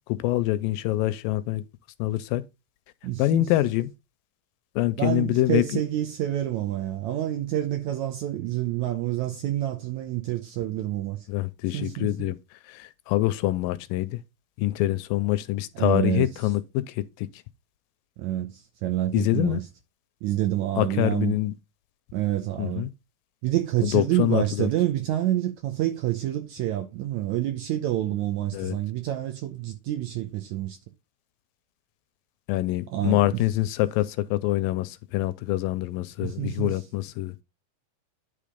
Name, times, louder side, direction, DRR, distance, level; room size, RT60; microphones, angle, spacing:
voice 1, 0.1-1.6 2.0-2.4 3.2-3.9 4.8-5.6 11.3-12.4 12.7-14.2 14.6-17.3 19.1-19.6 20.8-21.5 22.6-22.9 23.8-24.7 28.5-28.8 32.5-37.4, left 16 dB, 80° left, 2.1 m, -25 dB
voice 2, 3.0-3.5 5.0-11.3 11.7-12.3 15.7-16.3 18.2-19.7 20.2-21.4 22.1-22.9 23.4-30.8 32.9-33.4 36.2-36.8, right 13 dB, 75° right, 1.8 m, -28 dB
10.0 x 3.6 x 5.0 m
omnidirectional pair, 4.1 m